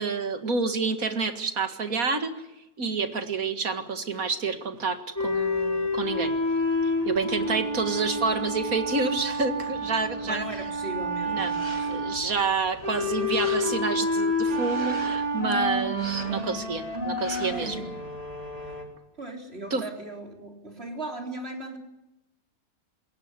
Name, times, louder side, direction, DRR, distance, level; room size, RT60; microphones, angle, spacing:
voice 1, 0.0-2.3 2.8-6.3 6.8-10.4 11.3-17.8 19.7-19.8, right 4 dB, 60° right, 9 dB, 2.4 m, -28 dB
sound 1, 5.2-18.8, left 1 dB, 25° right, 3.9 m, -29 dB
voice 2, 10.2-12.2 17.5-18.0 18.6-18.8 19.2-21.8, right 2 dB, 40° right, 4 dB, 4.2 m, -38 dB
sound 2, 11.2-12.1 12.6-14.0 14.4-15.3 15.9-16.7 17.2-17.8, equal, 15° left, 5.8 m, -43 dB
21.0 x 18.0 x 9.7 m, 0.94 s
omnidirectional pair, 1.6 m